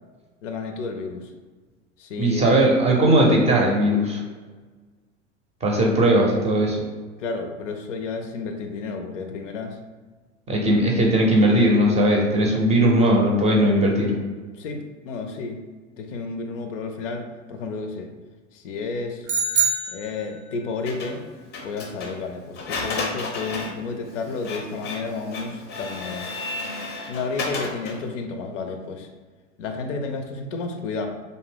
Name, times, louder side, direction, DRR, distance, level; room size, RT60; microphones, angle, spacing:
voice 1, 0.4-1.3 2.0-2.8 7.2-9.8 14.5-15.6 16.0-18.1 18.5-19.3 19.9-21.2 21.6-26.3 27.1-29.1 29.6-31.1, left 4 dB, 75° left, 5 dB, 0.5 m, -31 dB
voice 2, 2.2-4.2 5.6-6.8 10.5-14.2, right 1 dB, 20° right, -1 dB, 0.5 m, -18 dB
sound 1, 19.3-20.7, right 5 dB, 75° right, 0.6 m, -24 dB
Printer, 20.9-28.1, left 3 dB, 30° left, 0.5 m, -33 dB
2.6 x 2.1 x 3.3 m, 1.3 s
hypercardioid pair, 90°, 37 cm